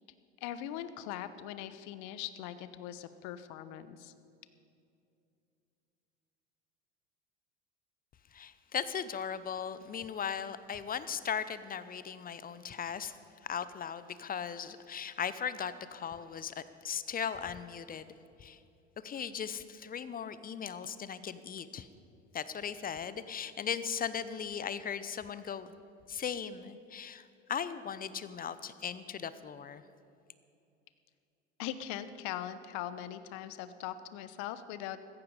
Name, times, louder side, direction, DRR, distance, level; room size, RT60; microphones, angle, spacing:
voice 1, 0.4-4.1 31.6-35.0, left 11 dB, 55° left, 13 dB, 1.0 m, -41 dB
voice 2, 8.3-13.2 13.4-18.1 18.4-18.6 19.0-21.9 22.3-25.7 26.1-29.8, left 7 dB, 25° left, 14 dB, 0.7 m, -38 dB
15.5 x 14.5 x 5.0 m, 2.6 s
figure-of-eight pair, 75°, 36 cm